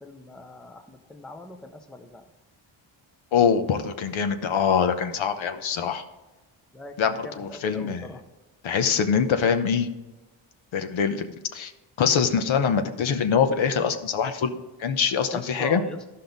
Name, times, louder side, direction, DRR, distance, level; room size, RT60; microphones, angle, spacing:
voice 1, 0.0-2.2 6.7-8.2 15.3-16.0, left 1 dB, ahead, 6 dB, 0.5 m, -40 dB
voice 2, 3.3-6.0 7.0-8.1 8.6-9.9 10.7-11.7 12.0-15.8, left 6 dB, 70° left, 9 dB, 0.9 m, -24 dB
13.5 x 5.6 x 3.9 m, 1.1 s
wide cardioid pair, 175°, 49 cm